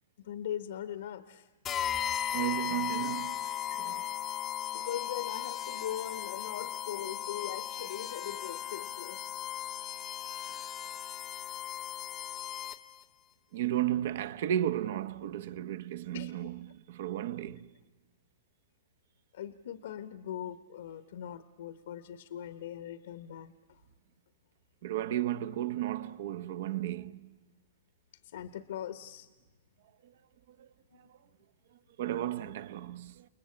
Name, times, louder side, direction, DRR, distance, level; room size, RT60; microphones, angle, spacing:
voice 1, 0.2-1.5 3.7-3.8 4.7-9.4 16.1-16.3 19.3-23.5 28.3-29.3 30.9-31.1, left 10 dB, 70° left, 1.1 m, -40 dB
sound 1, 1.6-13.0, left 10 dB, 20° left, 0.9 m, -37 dB
voice 2, 2.3-3.4 3.8-4.0 13.5-17.7 24.8-27.3 30.0-30.1 30.6-30.7 31.0-31.2 32.0-33.3, right 12 dB, 60° right, 1.0 m, -34 dB
29.0 x 21.0 x 8.7 m
hypercardioid pair, 155°, 0 cm